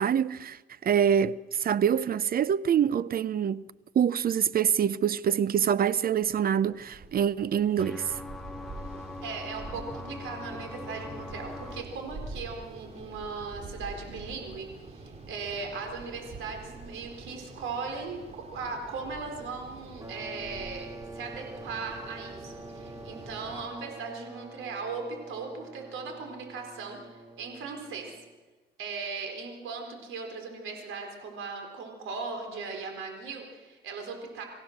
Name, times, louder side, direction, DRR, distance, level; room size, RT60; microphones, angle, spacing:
voice 1, 0.0-3.6 3.9-8.1, right 8 dB, 50° right, 0.6 m, -25 dB
sound 1, 5.9-23.7, right 2 dB, 35° right, 3.2 m, -46 dB
sound 2, 7.8-11.8, left 2 dB, ahead, 1.5 m, -42 dB
voice 2, 9.2-28.1 28.8-34.4, right 4 dB, 85° right, 4.2 m, -38 dB
sound 3, 20.0-28.4, right 2 dB, 15° right, 2.3 m, -46 dB
26.0 x 16.0 x 6.6 m
cardioid pair, 90°, 20 cm